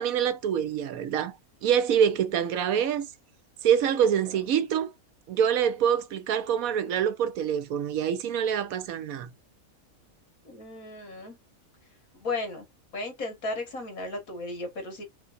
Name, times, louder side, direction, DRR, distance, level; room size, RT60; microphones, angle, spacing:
voice 1, 0.0-1.3 1.6-3.1 3.6-4.9 5.3-9.3, right 8 dB, 80° right, 1.1 m, -25 dB
voice 2, 10.4-11.4 12.2-12.7 12.9-15.0, left 2 dB, 80° left, 2.0 m, -35 dB
4.8 x 2.4 x 2.4 m
omnidirectional pair, 1.5 m